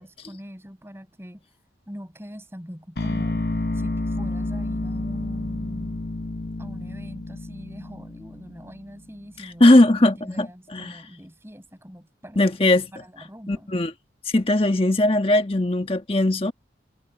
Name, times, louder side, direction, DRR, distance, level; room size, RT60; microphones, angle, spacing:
voice 1, 0.0-1.6 1.9-3.4 3.7-6.1 6.6-9.6 10.0-12.4 12.9-13.7, equal, 15° right, 6.7 m, -42 dB
sound 1, 3.0-9.0, left 2 dB, 55° left, 0.9 m, -30 dB
voice 2, 9.6-10.5 10.7-10.9 12.4-12.9 13.5-13.9 14.3-16.5, left 1 dB, 30° left, 1.4 m, -18 dB
head